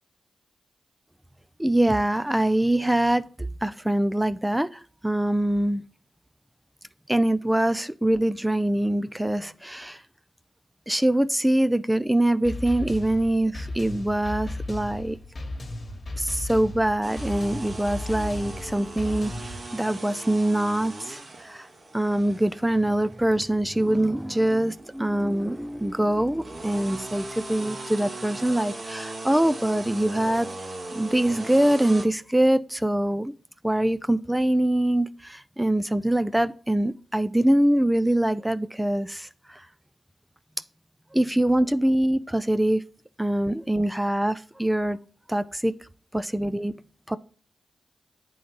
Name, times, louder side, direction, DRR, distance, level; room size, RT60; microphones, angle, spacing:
voice 1, 1.6-5.8 7.1-10.0 10.9-15.2 16.2-21.7 21.9-30.5 30.9-33.3 33.6-39.7 41.1-42.8 43.2-45.0 45.3-45.7 46.1-46.7 47.1-47.2, right 1 dB, 10° right, 0.4 m, -24 dB
sound 1, 12.4-19.7, left 2 dB, 50° left, 1.3 m, -35 dB
sound 2, 17.0-32.1, right 2 dB, 50° right, 1.3 m, -39 dB
8.6 x 3.9 x 5.2 m
cardioid pair, 50°, 0 cm